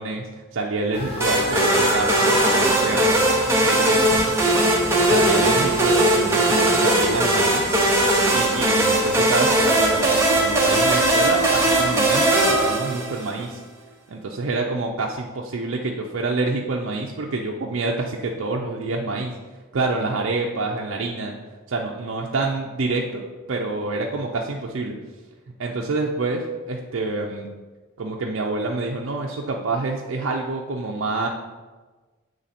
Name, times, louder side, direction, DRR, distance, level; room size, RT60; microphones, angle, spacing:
voice 1, 0.0-4.0 5.1-7.8 8.3-13.6 14.1-19.3 19.7-21.3 21.7-25.0 25.6-27.5 28.0-31.3, right 3 dB, 65° right, -1 dB, 0.5 m, -27 dB
sound 1, 0.9-12.7, left 1 dB, 30° left, 0.9 m, -32 dB
sound 2, 1.2-13.4, right 1 dB, 10° right, 0.8 m, -19 dB
7.4 x 3.2 x 4.2 m, 1.3 s
head